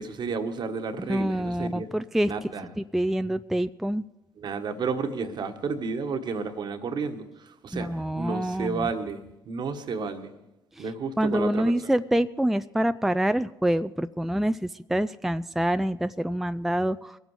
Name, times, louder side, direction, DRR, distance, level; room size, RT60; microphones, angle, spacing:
voice 1, 0.0-1.9 2.2-2.7 4.4-10.3 10.8-11.7, right 4 dB, 55° right, 1.4 m, -32 dB
voice 2, 1.1-2.3 2.8-4.0 7.7-8.9 10.8-10.9 11.2-17.2, right 1 dB, 5° right, 0.4 m, -26 dB
21.5 x 8.2 x 4.9 m
hypercardioid pair, 60°, 9 cm